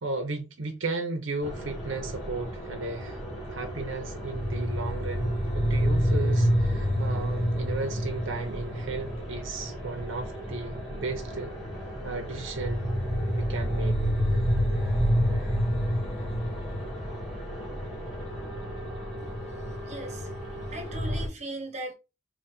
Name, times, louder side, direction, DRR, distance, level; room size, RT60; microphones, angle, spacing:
voice 1, 0.0-3.2 3.5-11.5 12.0-12.9 13.3-14.0, right 3 dB, 90° right, 0.9 m, -35 dB
sound 1, 1.4-21.3, equal, ahead, 2.4 m, -29 dB
voice 2, 19.8-20.4 20.7-21.9, right 2 dB, 35° right, 1.1 m, -38 dB
4.0 x 2.9 x 4.3 m
head